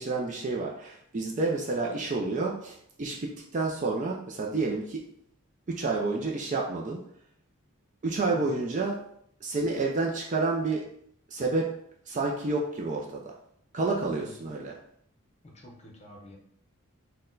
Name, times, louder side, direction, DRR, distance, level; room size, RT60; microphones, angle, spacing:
voice 1, 0.0-5.0 5.7-7.0 8.0-9.0 9.4-10.9 11.3-11.7 12.1-13.3 13.7-14.8, right 3 dB, 35° right, -1 dB, 0.4 m, -29 dB
voice 2, 14.1-14.6 15.4-16.4, left 1 dB, 30° left, 0 dB, 0.7 m, -49 dB
4.2 x 2.2 x 3.8 m, 0.69 s
head